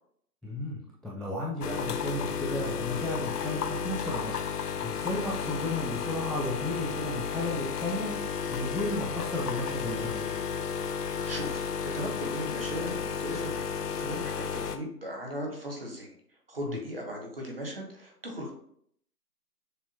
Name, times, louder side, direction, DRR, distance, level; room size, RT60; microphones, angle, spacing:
voice 1, 0.4-10.3 16.7-16.8, left 1 dB, ahead, -5 dB, 0.4 m, -34 dB
sound 1, 1.6-14.8, left 6 dB, 70° left, 0.5 m, -33 dB
voice 2, 10.9-11.6 11.9-13.7 14.0-16.1 16.5-18.5, equal, 35° right, 0 dB, 0.9 m, -38 dB
6.7 x 2.2 x 2.8 m, 0.66 s
hypercardioid pair, 170°, 49 cm